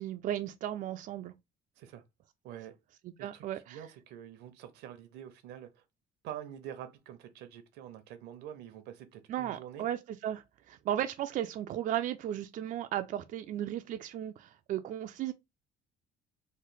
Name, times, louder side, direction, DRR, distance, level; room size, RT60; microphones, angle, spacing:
voice 1, 0.0-1.3 3.2-3.8 9.3-15.3, right 11 dB, 50° right, 0.4 m, -35 dB
voice 2, 2.4-2.7 3.2-5.8 6.2-9.9, right 10 dB, 90° right, 0.7 m, -46 dB
3.1 x 2.1 x 3.8 m
cardioid pair, 110°, 17 cm